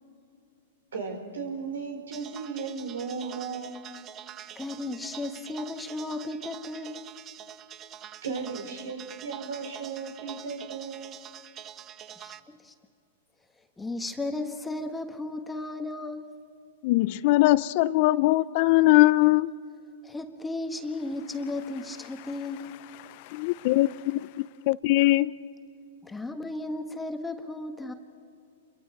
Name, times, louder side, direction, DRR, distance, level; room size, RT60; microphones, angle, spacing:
voice 1, 0.9-3.8 8.2-11.2, right 5 dB, 90° right, 4.6 m, -35 dB
sound 1, 2.1-12.4, right 10 dB, 30° right, 0.7 m, -45 dB
voice 2, 4.5-7.2 12.2-12.7 13.8-16.4 20.0-22.8 26.0-27.9, left 2 dB, 10° left, 1.4 m, -35 dB
voice 3, 16.8-19.5 23.0-24.3 24.7-25.3, left 18 dB, 50° left, 0.6 m, -21 dB
28.5 x 23.0 x 4.8 m
hypercardioid pair, 135°, 0 cm